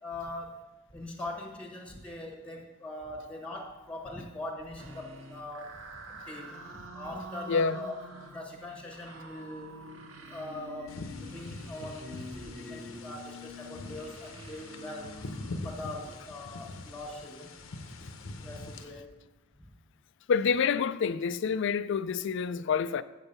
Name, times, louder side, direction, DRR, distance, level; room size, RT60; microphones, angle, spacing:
voice 1, 0.0-0.6 0.9-9.8 10.3-15.2 15.6-17.5 18.4-19.1 19.6-19.7, left 1 dB, 5° left, 1.1 m, -42 dB
sound 1, 4.8-16.2, equal, 70° right, 1.0 m, -46 dB
voice 2, 7.5-7.8 12.7-12.8 20.3-23.0, left 6 dB, 65° left, 0.4 m, -27 dB
sound 2, 10.9-18.8, left 2 dB, 80° left, 0.8 m, -43 dB
7.9 x 7.2 x 5.4 m
head